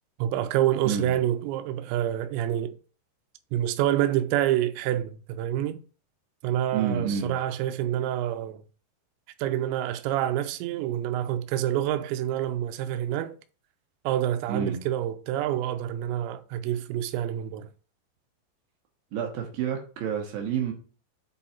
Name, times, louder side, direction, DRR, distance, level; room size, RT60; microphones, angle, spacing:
voice 1, 0.2-2.7 3.5-5.8 6.4-8.6 9.4-13.4 14.0-17.7, right 12 dB, 90° right, 2.9 m, -27 dB
voice 2, 6.7-7.3 14.5-14.8 19.1-20.7, right 7 dB, 70° right, 2.5 m, -29 dB
8.0 x 3.8 x 4.3 m
omnidirectional pair, 5.0 m